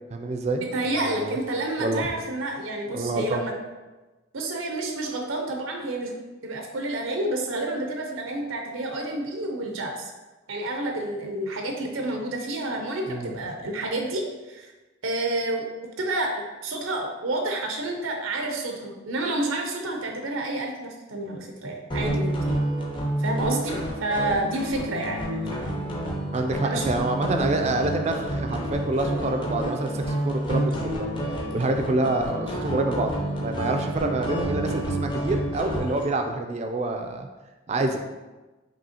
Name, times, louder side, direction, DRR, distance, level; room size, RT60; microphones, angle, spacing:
voice 1, 0.1-0.7 1.0-1.4 1.8-2.1 2.9-3.4 13.1-13.3 26.3-31.1 31.5-33.1 33.4-37.3 37.7-38.0, right 2 dB, 35° right, 5 dB, 0.3 m, -27 dB
voice 2, 0.7-3.5 4.3-6.1 6.4-10.1 10.5-14.7 15.0-15.7 16.0-22.3 23.2-25.2 26.6-26.9, right 2 dB, 90° right, 2 dB, 0.6 m, -29 dB
sound 1, 21.9-36.0, right 1 dB, 25° left, 0.5 m, -29 dB
5.3 x 2.8 x 2.8 m, 1.2 s
head